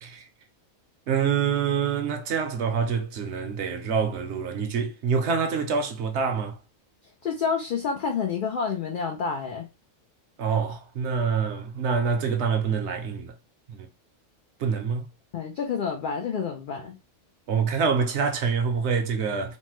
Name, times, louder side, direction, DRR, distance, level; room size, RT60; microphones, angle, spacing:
voice 1, 1.1-6.6 10.4-13.3 13.7-13.9 14.6-15.1 17.5-19.6, right 6 dB, 65° right, 0.9 m, -26 dB
voice 2, 7.2-9.7 15.3-17.0, left 6 dB, 65° left, 0.5 m, -28 dB
3.1 x 2.1 x 2.9 m
omnidirectional pair, 1.4 m